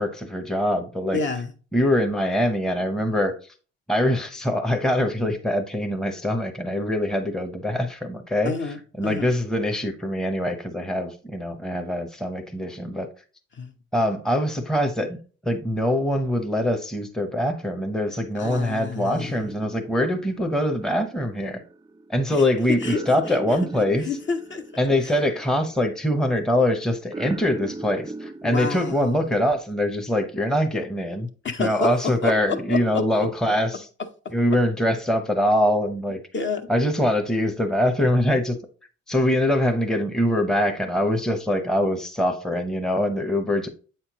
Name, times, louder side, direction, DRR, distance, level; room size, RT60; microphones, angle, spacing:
voice 1, 0.0-1.2 1.7-3.4 3.9-13.1 13.9-15.2 15.4-21.6 22.1-24.1 24.8-31.3 31.6-33.9 34.3-36.2 36.7-38.6 39.1-43.7, left 1 dB, ahead, 0.7 m, -23 dB
voice 2, 1.1-1.5 8.4-8.8 9.0-9.3 13.5-13.7 18.3-19.5 22.7-23.0 23.3-23.4 24.0-24.6 25.0-25.1 28.4-29.3 31.4-33.0 36.3-36.7, left 4 dB, 40° left, 0.8 m, -29 dB
sound 1, 19.2-29.6, right 2 dB, 15° right, 0.3 m, -40 dB
7.6 x 4.4 x 2.9 m
cardioid pair, 90°, 30 cm